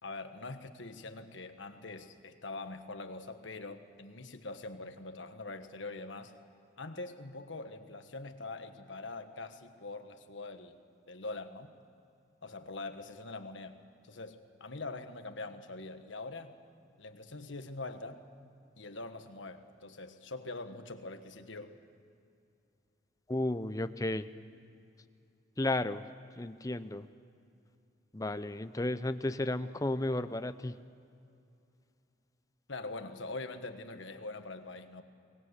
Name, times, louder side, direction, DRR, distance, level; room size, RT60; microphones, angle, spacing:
voice 1, 0.0-6.3 6.8-10.8 11.1-11.7 12.4-13.8 14.1-16.5 17.0-18.2 18.8-21.7 32.7-35.0, left 3 dB, 70° left, 7 dB, 1.5 m, -43 dB
voice 2, 23.3-24.3 25.6-26.1 26.4-27.1 28.1-30.8, left 2 dB, 15° left, 11 dB, 0.6 m, -33 dB
23.0 x 19.5 x 8.1 m, 2.5 s
head